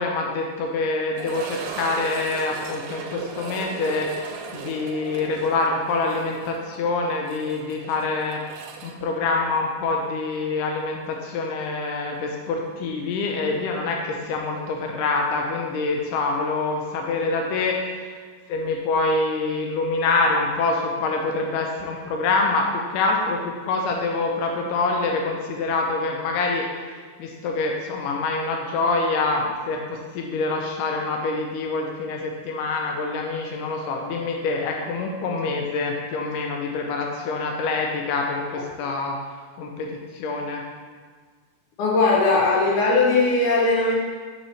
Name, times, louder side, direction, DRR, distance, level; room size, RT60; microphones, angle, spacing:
voice 1, 0.0-18.2 18.5-39.2 39.6-40.6, left 3 dB, 90° left, 1 dB, 1.9 m, -26 dB
sound 1, 1.1-10.1 10.3-10.4 11.0-11.1 13.7-13.8, right 5 dB, 80° right, 2.2 m, -37 dB
voice 2, 41.8-43.9, left 3 dB, 75° left, -4 dB, 2.0 m, -19 dB
6.8 x 6.1 x 3.2 m, 1.5 s
omnidirectional pair, 4.3 m